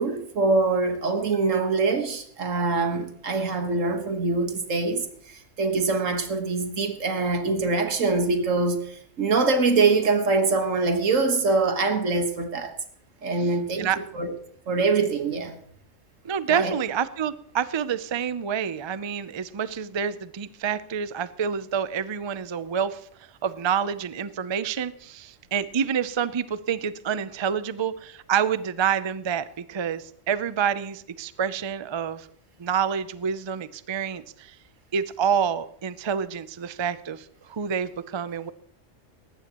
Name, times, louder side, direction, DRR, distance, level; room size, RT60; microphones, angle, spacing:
voice 1, 0.0-12.7 13.2-13.9 14.1-14.3 14.7-15.6 16.5-16.8, right 3 dB, 85° right, 6 dB, 1.9 m, -24 dB
voice 2, 16.2-23.0 23.4-32.3 32.6-34.6 34.9-38.5, right 7 dB, 40° right, 14 dB, 0.4 m, -28 dB
19.0 x 15.0 x 3.0 m, 0.63 s
omnidirectional pair, 1.3 m